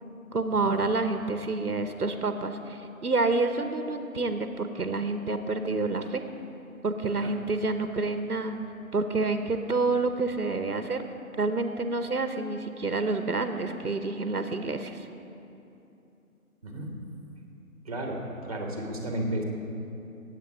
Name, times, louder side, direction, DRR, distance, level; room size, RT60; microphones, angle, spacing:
voice 1, 0.3-6.2 6.8-8.6 8.9-11.0 11.4-15.0, right 3 dB, 80° right, 8 dB, 1.0 m, -28 dB
voice 2, 17.8-19.4, right 1 dB, 25° right, 2 dB, 1.2 m, -33 dB
16.5 x 8.3 x 4.9 m, 2.8 s
figure-of-eight pair, 155°, 45 cm